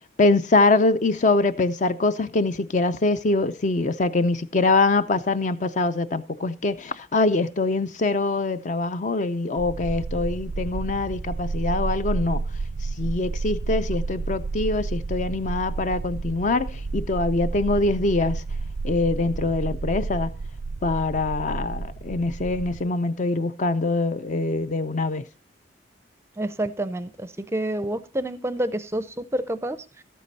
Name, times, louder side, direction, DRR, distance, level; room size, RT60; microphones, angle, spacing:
voice 1, 0.2-12.4 13.0-18.4 18.8-20.3 20.8-25.2, left 3 dB, 40° left, 0.4 m, -23 dB
sound 1, 9.6-22.8, right 3 dB, 85° right, 0.5 m, -31 dB
voice 2, 26.4-30.0, right 1 dB, 15° right, 0.5 m, -28 dB
13.0 x 8.5 x 4.1 m
head